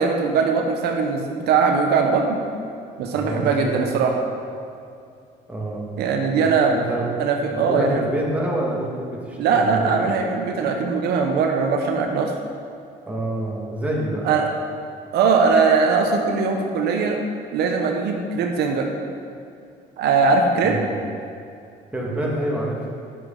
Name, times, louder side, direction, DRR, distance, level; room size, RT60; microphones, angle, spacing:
voice 1, 0.0-2.4 3.0-4.2 6.0-6.8 7.2-8.0 9.4-12.3 14.2-14.4 15.1-17.2 17.5-18.9 20.0-20.9, right 5 dB, 75° right, 2 dB, 0.9 m, -20 dB
voice 2, 3.1-3.9 5.5-5.9 6.4-7.1 7.6-10.1 13.1-14.3 20.6-21.0 21.9-22.9, right 1 dB, 10° right, -4 dB, 1.9 m, -27 dB
9.7 x 7.8 x 3.9 m, 2.5 s
cardioid pair, 110°, 17 cm